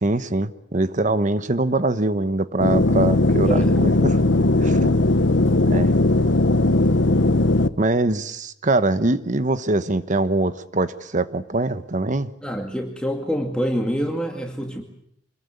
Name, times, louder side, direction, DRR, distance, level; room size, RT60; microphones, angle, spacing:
voice 1, 0.0-4.2 4.6-4.9 5.7-5.9 7.8-12.3, right 2 dB, 40° right, 13 dB, 1.1 m, -23 dB
sound 1, 2.6-7.7, left 2 dB, 75° left, 1.1 m, -18 dB
voice 2, 12.4-14.8, equal, 5° left, 2 dB, 2.2 m, -26 dB
26.0 x 21.5 x 8.4 m, 0.74 s
head